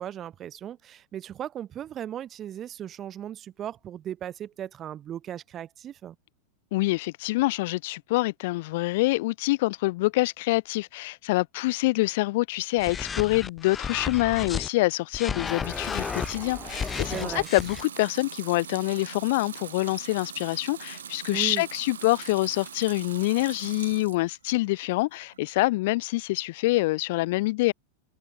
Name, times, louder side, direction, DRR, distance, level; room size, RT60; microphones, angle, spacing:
voice 1, 0.0-6.2 17.1-17.5 21.3-21.7, right 10 dB, 30° right, 0.8 m, -37 dB
voice 2, 6.7-27.7, left 20 dB, 50° left, 0.6 m, -26 dB
sound 1, 12.8-14.7 15.1-17.8, left 6 dB, 20° left, 1.3 m, -33 dB
Water tap faucet / Sink (filling or washing) / Liquid, 15.3-24.3 24.7-25.4, right 8 dB, 65° right, 1.8 m, -42 dB
open air
figure-of-eight pair, 90°, 0 cm